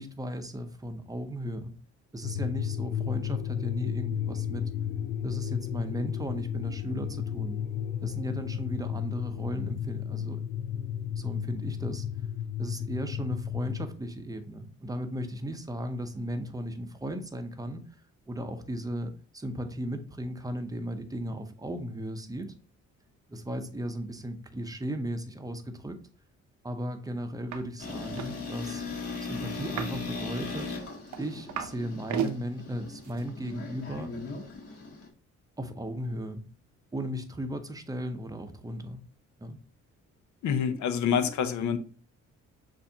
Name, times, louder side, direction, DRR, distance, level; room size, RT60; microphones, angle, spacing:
voice 1, 0.0-1.7 2.1-4.7 5.2-7.6 8.0-10.4 11.2-12.0 12.6-17.8 18.3-22.5 23.3-26.0 26.6-28.8 29.2-30.7 31.2-34.2 35.6-36.4 36.9-39.0 39.4-39.6, equal, 10° right, 0.7 m, -36 dB
sound 1, 2.2-13.9, left 9 dB, 30° left, 0.5 m, -33 dB
sound 2, 27.5-27.6 27.9-28.3 29.6-30.1 30.6-31.8 32.0-32.4 33.0-33.2, right 8 dB, 70° right, 0.7 m, -34 dB
sound 3, 27.8-35.1, left 4 dB, 50° left, 1.4 m, -38 dB
voice 2, 40.4-41.8, left 7 dB, 70° left, 0.7 m, -27 dB
6.7 x 2.6 x 2.8 m
cardioid pair, 90°, 30 cm